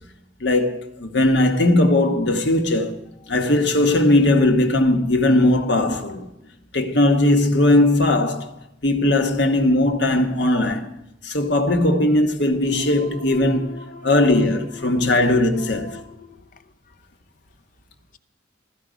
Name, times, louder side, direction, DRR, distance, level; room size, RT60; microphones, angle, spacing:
voice 1, 0.4-3.0 3.3-6.3 6.7-8.5 8.8-10.9 11.2-13.7 14.0-16.0, left 1 dB, 65° left, 1.3 m, -18 dB
voice 2, 12.7-17.0, left 3 dB, 45° left, 0.8 m, -41 dB
15.5 x 14.0 x 5.1 m
head